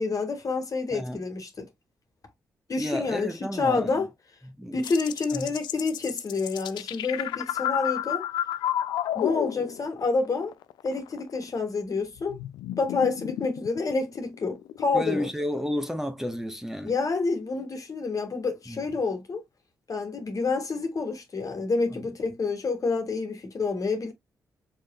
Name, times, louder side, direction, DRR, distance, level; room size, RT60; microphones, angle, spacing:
voice 1, 0.0-1.7 2.7-4.1 4.7-8.2 9.1-10.5 10.8-12.4 12.8-15.3 16.8-19.4 19.9-24.1, left 4 dB, 50° left, 1.7 m, -28 dB
voice 2, 0.9-1.2 2.8-4.1 4.6-4.8 5.3-5.5 14.9-16.9 18.7-18.8 21.9-22.1, equal, 5° right, 1.2 m, -32 dB
sound 1, 4.8-10.0 10.3-11.5 12.2-15.1, left 12 dB, 80° left, 0.3 m, -31 dB
5.1 x 4.0 x 2.3 m
hypercardioid pair, 45°, 8 cm